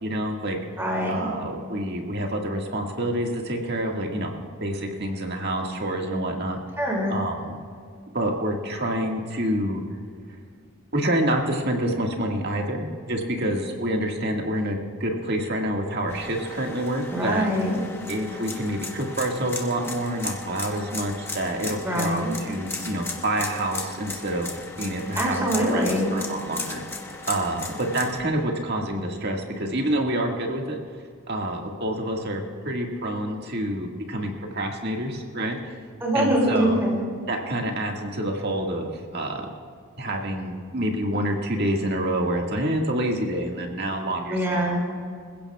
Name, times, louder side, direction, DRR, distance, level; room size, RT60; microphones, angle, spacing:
voice 1, 0.0-0.6 1.1-6.6 7.1-7.6 8.1-9.8 10.9-17.5 18.1-24.5 24.8-25.8 26.1-26.8 27.3-30.8 31.3-35.7 36.1-36.8 37.3-39.5 40.0-44.8, right 1 dB, 45° right, 1 dB, 1.9 m, -27 dB
voice 2, 0.8-1.3 6.8-7.2 17.1-17.8 21.8-22.3 25.1-26.1 36.0-37.0 44.3-44.8, equal, 10° right, -3 dB, 4.7 m, -23 dB
sound 1, 16.1-28.2, left 3 dB, 10° left, 1.2 m, -36 dB
26.5 x 16.0 x 2.4 m, 2.1 s
head